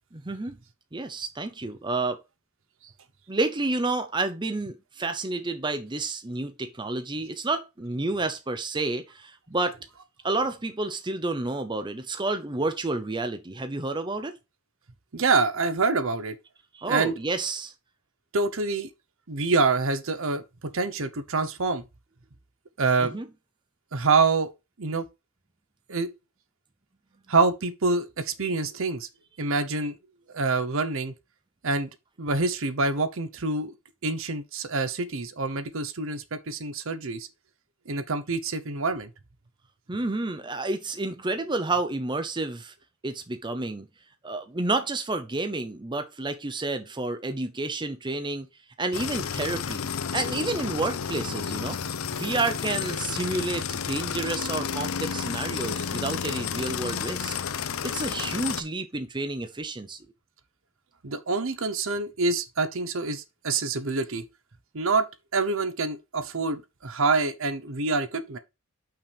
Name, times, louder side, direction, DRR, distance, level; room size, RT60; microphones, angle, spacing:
voice 1, 0.1-0.6 0.9-2.2 3.3-9.8 10.2-14.3 16.7-17.7 23.0-23.3 39.9-42.7 43.0-43.9 44.2-48.5 48.8-51.8 52.1-57.3 57.8-60.0, right 2 dB, 20° right, 0.7 m, -30 dB
voice 2, 15.1-16.3 16.9-17.1 18.3-18.9 19.3-20.4 20.7-21.8 22.8-23.1 23.9-24.5 24.8-25.0 25.9-26.1 27.3-29.1 29.4-29.9 30.3-31.1 31.6-31.9 32.2-33.7 34.0-37.3 37.9-39.1 61.0-64.2 64.7-68.4, right 3 dB, 65° right, 0.9 m, -26 dB
sound 1, 48.9-58.6, left 7 dB, 70° left, 0.6 m, -31 dB
5.9 x 4.7 x 5.2 m
head